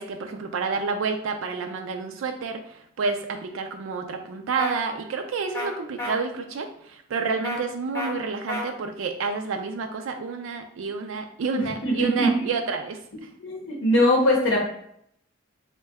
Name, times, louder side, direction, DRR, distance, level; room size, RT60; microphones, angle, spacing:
voice 1, 0.0-13.0, right 4 dB, 70° right, 5 dB, 0.4 m, -29 dB
sound 1, 4.6-4.7 5.5-5.7 6.0-6.1 7.4-7.6 7.9-8.1 8.5-8.6, left 1 dB, 15° left, 0.7 m, -30 dB
voice 2, 11.5-12.3 13.4-14.7, equal, 70° left, -1 dB, 0.7 m, -21 dB
3.6 x 2.1 x 3.4 m, 0.72 s
head